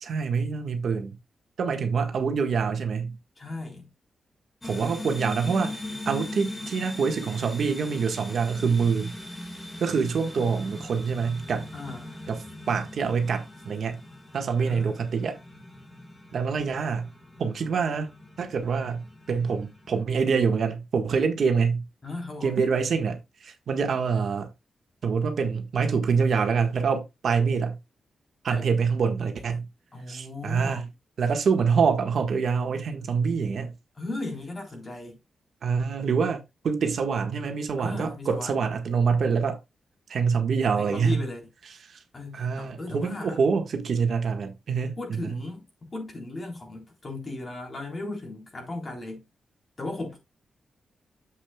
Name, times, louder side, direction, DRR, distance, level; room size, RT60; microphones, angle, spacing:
voice 1, 0.0-1.2 1.6-3.2 4.6-9.1 9.8-11.7 12.3-12.4 12.7-14.0 14.3-15.4 16.3-17.1 17.4-18.1 18.4-21.8 22.4-24.5 25.0-27.8 28.4-29.7 30.1-30.9 31.2-33.7 35.6-39.6 40.1-41.2 41.9-42.0 42.3-45.4, right 5 dB, 65° right, 1.5 m, -26 dB
voice 2, 3.4-3.9 11.7-12.3 14.6-14.9 22.0-22.6 28.5-28.7 29.9-30.9 34.0-35.2 37.8-38.6 40.8-41.4 42.1-43.4 45.0-45.6 45.9-49.2 49.8-50.2, left 2 dB, 30° left, 3.7 m, -36 dB
sound 1, 4.6-20.0, left 2 dB, 10° left, 1.9 m, -41 dB
9.8 x 7.6 x 2.3 m
wide cardioid pair, 130°, 0 cm